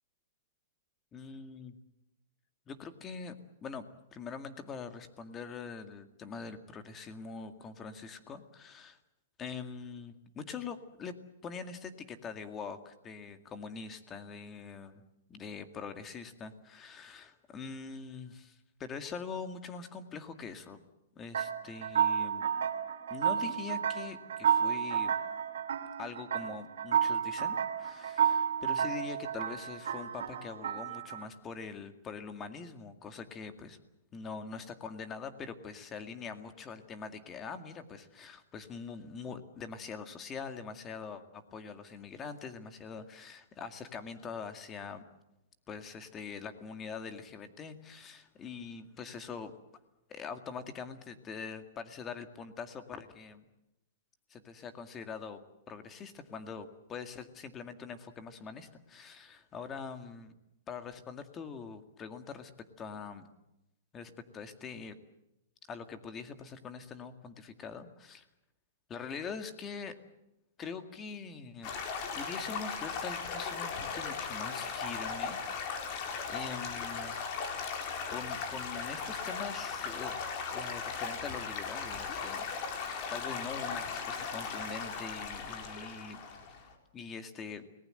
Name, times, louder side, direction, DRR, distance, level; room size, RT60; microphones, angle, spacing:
voice 1, 1.1-1.8 2.7-3.4 3.6-3.9 4.1-9.0 9.4-11.1 11.4-15.0 15.3-20.8 21.2-22.5 23.1-25.1 26.0-33.8 34.1-45.0 45.7-49.5 50.1-53.4 54.3-55.4 55.7-60.3 60.7-62.5 62.8-63.2 63.9-65.0 65.7-68.3 68.9-70.0 70.6-71.7 72.1-77.2 78.1-80.1 80.5-82.4 82.8-86.2 86.9-87.7, left 5 dB, 20° left, 8 dB, 2.1 m, -43 dB
sound 1, 21.3-31.2, right 8 dB, 80° right, 2.6 m, -31 dB
Stream / Gurgling / Trickle dribble, 71.6-86.7, left 5 dB, 35° left, 4.3 m, -37 dB
29.5 x 19.5 x 7.9 m, 0.89 s
hypercardioid pair, 155°, 0 cm